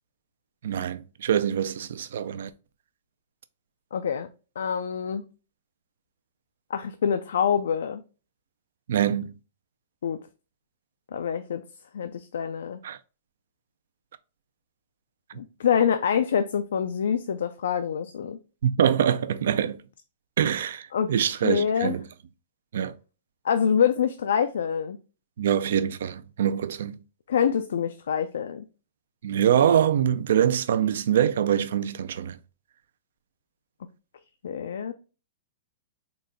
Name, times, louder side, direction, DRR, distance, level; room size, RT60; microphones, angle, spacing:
voice 1, 0.6-2.5 8.9-9.3 12.8-13.0 18.6-19.8 20.4-22.0 22.7-22.9 25.4-27.0 29.2-32.4, right 9 dB, 70° right, 0.3 m, -24 dB
voice 2, 3.9-4.3 4.6-5.3 6.7-8.0 10.0-10.2 11.1-11.6 11.9-12.8 15.3-18.4 20.9-22.0 23.4-25.0 27.3-28.6 34.4-34.9, left 7 dB, 85° left, 0.3 m, -26 dB
3.9 x 2.2 x 3.6 m
hypercardioid pair, 155°, 0 cm